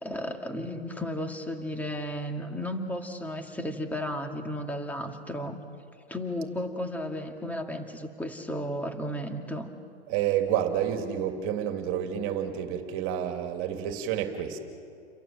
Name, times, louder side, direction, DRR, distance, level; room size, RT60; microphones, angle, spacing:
voice 1, 0.0-5.6 6.1-9.7, equal, 5° left, 4 dB, 2.2 m, -34 dB
voice 2, 10.1-14.6, right 10 dB, 35° right, 5 dB, 2.9 m, -29 dB
30.0 x 23.0 x 7.7 m, 2.3 s
hypercardioid pair, 125°, 34 cm